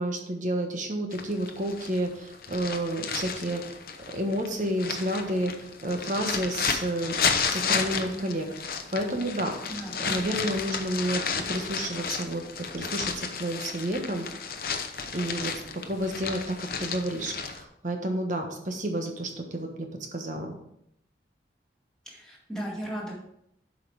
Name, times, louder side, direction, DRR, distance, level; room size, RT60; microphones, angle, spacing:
voice 1, 0.0-3.8 4.1-7.2 7.4-9.6 10.0-14.3 15.1-20.6, right 1 dB, 45° right, 3 dB, 1.2 m, -30 dB
sound 1, 1.1-17.6, left 6 dB, 55° left, 0.7 m, -32 dB
voice 2, 9.7-10.5 22.1-23.1, right 1 dB, 5° left, -5 dB, 2.1 m, -36 dB
7.8 x 5.3 x 4.8 m, 0.76 s
head